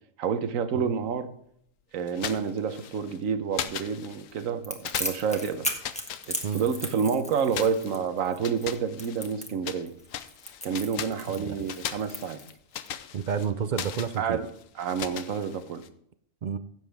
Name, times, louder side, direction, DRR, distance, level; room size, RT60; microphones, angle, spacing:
voice 1, 0.2-1.3 1.9-5.7 6.3-9.9 10.6-12.4 14.2-14.5 14.8-15.8, right 6 dB, 85° right, 10 dB, 1.3 m, -29 dB
sound 1, 2.1-3.2 3.5-4.5 4.8-6.9 7.5-9.8 10.1-15.9, left 9 dB, 90° left, 1.1 m, -39 dB
Crackle, 4.6-12.9, left 1 dB, 5° left, 1.2 m, -36 dB
voice 2, 11.3-11.6 13.1-14.4 16.4-16.6, right 7 dB, 65° right, 12 dB, 0.4 m, -30 dB
16.0 x 7.4 x 3.4 m, 0.70 s
omnidirectional pair, 1.3 m